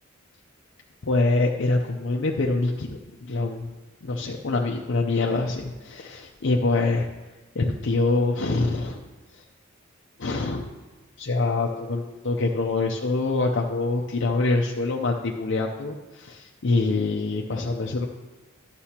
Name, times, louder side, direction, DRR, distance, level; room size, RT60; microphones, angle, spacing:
voice 1, 1.1-7.1 7.5-9.0 9.3-9.4 10.2-10.6 11.2-18.1, left 3 dB, 60° left, 0 dB, 0.6 m, -25 dB
11.5 x 6.8 x 2.9 m, 1.2 s
head